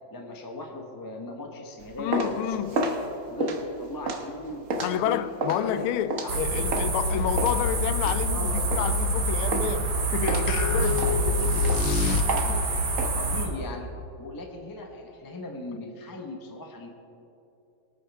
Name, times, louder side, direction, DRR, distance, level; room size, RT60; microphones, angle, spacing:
voice 1, 0.1-3.0 3.3-5.9 6.2-6.9 8.3-8.5 12.1-12.6 13.0-13.9 14.2-16.9, left 2 dB, 15° left, 0.7 m, -38 dB
sound 1, 1.8-7.0 7.4-9.2 9.5-9.9 10.3-13.1, right 2 dB, 45° right, 1.3 m, -31 dB
voice 2, 2.0-2.8 4.8-11.7 15.7-15.8, left 11 dB, 90° left, 1.4 m, -30 dB
sound 2, 6.3-13.5, right 2 dB, 75° right, 2.4 m, -27 dB
sound 3, 10.5-12.7, left 4 dB, 70° left, 1.3 m, -26 dB
23.5 x 9.3 x 3.5 m
omnidirectional pair, 2.2 m